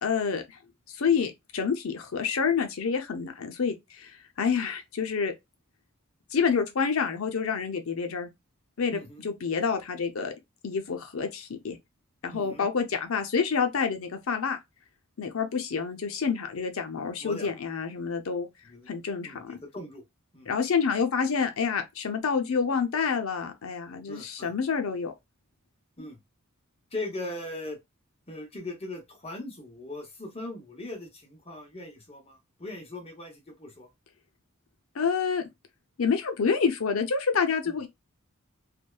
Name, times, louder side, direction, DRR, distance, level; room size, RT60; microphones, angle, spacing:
voice 1, 0.0-0.6 0.9-5.3 6.3-8.3 8.8-10.3 10.6-11.8 12.2-14.6 15.2-18.5 18.9-19.6 20.5-25.1 34.9-35.4 36.0-37.9, left 6 dB, 70° left, 0.6 m, -28 dB
voice 2, 8.9-9.3 12.3-12.7 17.2-17.5 18.6-18.9 19.2-20.0 20.3-20.5 24.1-24.5 26.0-26.2 26.9-27.8 28.3-33.9 37.7-37.8, left 2 dB, 30° left, 0.8 m, -39 dB
2.7 x 2.2 x 2.3 m
head